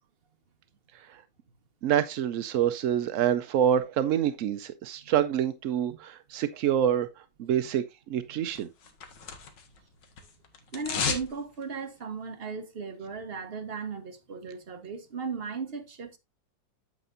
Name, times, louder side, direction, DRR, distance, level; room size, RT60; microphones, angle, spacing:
voice 1, 1.8-7.1 7.4-7.8 8.1-8.7, right 10 dB, 75° right, 0.7 m, -26 dB
sound 1, 8.5-9.8 10.0-11.3 11.6-11.7, left 6 dB, 80° left, 2.0 m, -33 dB
voice 2, 10.7-16.2, right 5 dB, 35° right, 1.3 m, -37 dB
9.1 x 7.5 x 2.6 m
omnidirectional pair, 1.9 m